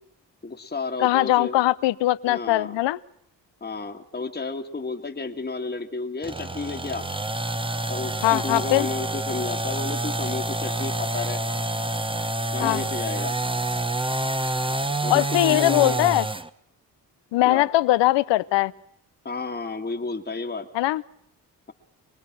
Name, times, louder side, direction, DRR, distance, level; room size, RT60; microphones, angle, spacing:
voice 1, 0.4-1.6 2.3-2.8 3.6-7.1 7.9-11.4 12.5-13.4 15.0-16.1 17.5-17.7 19.3-20.7, left 3 dB, 20° left, 1 dB, 1.7 m, -32 dB
voice 2, 1.0-3.0 8.2-8.9 12.6-12.8 15.1-16.3 17.3-18.7 20.7-21.0, left 17 dB, 75° left, 18 dB, 0.7 m, -21 dB
sound 1, 6.2-16.5, right 1 dB, 10° right, 1.0 m, -28 dB
24.5 x 19.5 x 6.0 m, 0.74 s
hypercardioid pair, 45°, 44 cm